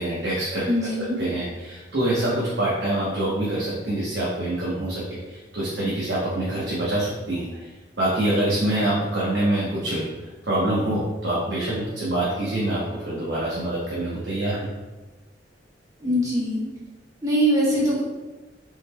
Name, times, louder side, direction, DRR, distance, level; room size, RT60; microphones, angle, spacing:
voice 1, 0.0-0.6 1.2-7.7 8.0-10.1 10.5-14.7, right 1 dB, 70° right, -7 dB, 0.9 m, -25 dB
voice 2, 0.7-1.2 16.0-16.6 17.2-18.0, equal, 20° right, -6 dB, 1.1 m, -22 dB
5.6 x 3.9 x 2.2 m, 1.2 s
head